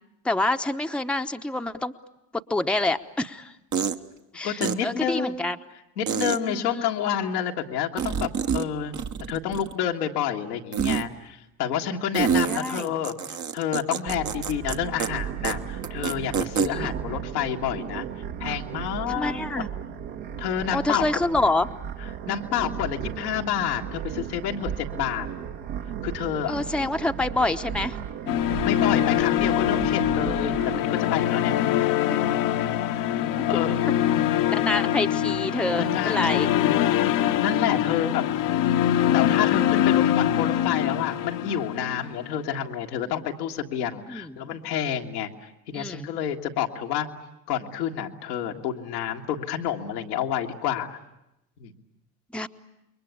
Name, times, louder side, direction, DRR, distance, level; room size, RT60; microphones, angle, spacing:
voice 1, 0.2-1.9 2.5-3.6 4.3-5.6 6.4-6.9 12.5-12.9 16.6-16.9 19.1-19.7 20.7-21.7 26.5-28.0 32.1-32.2 34.5-36.5 43.0-43.1 44.1-44.4 45.7-46.1 52.3-52.5, left 2 dB, ahead, 6 dB, 1.0 m, -27 dB
sound 1, 2.8-2.9 3.7-4.0 4.6-4.7 6.1-6.4 8.0-8.7 8.9-9.8 10.7-11.0 12.1-14.7 15.0-15.1 15.4-15.5 15.8-16.7, right 7 dB, 40° right, 1.2 m, -26 dB
voice 2, 4.4-5.5 6.0-9.0 9.3-18.1 18.4-19.5 20.4-21.0 22.3-25.3 26.0-26.5 28.6-31.9 32.9-33.1 33.5-33.8 35.8-38.2 39.1-45.3 45.7-47.1 47.5-51.0 51.6-51.7, left 9 dB, 80° left, 1 dB, 1.8 m, -29 dB
sound 2, 14.1-30.8, right 8 dB, 65° right, 2.0 m, -35 dB
sound 3, 28.3-42.4, left 11 dB, 65° left, 1.3 m, -24 dB
28.0 x 22.5 x 8.4 m, 0.87 s
hypercardioid pair, 60°, 48 cm